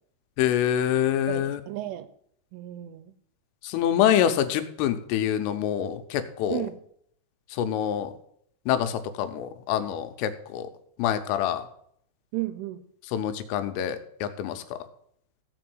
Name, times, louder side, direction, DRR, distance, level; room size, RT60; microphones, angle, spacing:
voice 1, 0.4-1.6 3.6-6.7 7.5-8.1 8.7-10.7 11.0-11.6 13.1-14.8, left 10 dB, 80° left, 9 dB, 3.3 m, -26 dB
voice 2, 1.3-2.1 2.5-3.1 6.5-6.8 12.3-12.8, right 16 dB, 85° right, 13 dB, 2.9 m, -33 dB
15.5 x 5.5 x 7.8 m, 0.68 s
omnidirectional pair, 6.0 m